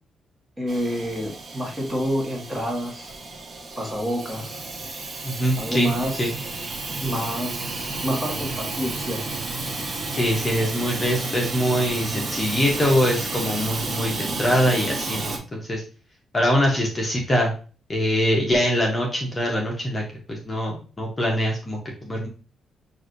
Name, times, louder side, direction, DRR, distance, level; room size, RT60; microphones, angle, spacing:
voice 1, 0.6-3.1 3.8-4.6 5.6-6.3 7.0-9.4, equal, 15° right, 0 dB, 1.3 m, -28 dB
Hiss / Toilet flush / Trickle dribble, 0.7-15.4, right 3 dB, 40° right, 0.9 m, -32 dB
voice 2, 5.2-5.9 6.2-6.3 10.1-15.8 16.3-17.5 17.9-20.0 20.3-22.3, equal, 25° left, -1 dB, 0.9 m, -23 dB
6.0 x 2.6 x 2.5 m, 0.37 s
cardioid pair, 120°, 0 cm